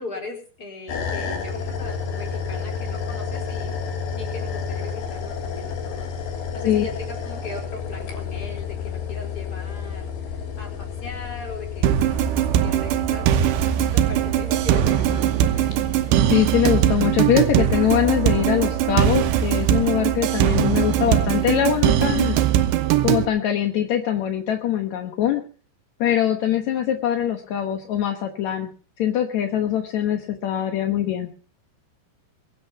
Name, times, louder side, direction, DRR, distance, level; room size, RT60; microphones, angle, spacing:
voice 1, 0.0-6.1 6.5-15.7, left 3 dB, 25° left, 2 dB, 4.6 m, -39 dB
sound 1, 0.9-18.9, left 6 dB, 85° left, 5.4 m, -32 dB
sound 2, 11.8-23.3, right 11 dB, 90° right, 3.3 m, -20 dB
voice 2, 16.2-22.4 23.0-25.4 26.0-28.7 29.0-31.3, left 10 dB, 65° left, 5 dB, 1.9 m, -22 dB
22.5 x 9.5 x 5.7 m, 0.41 s
omnidirectional pair, 4.8 m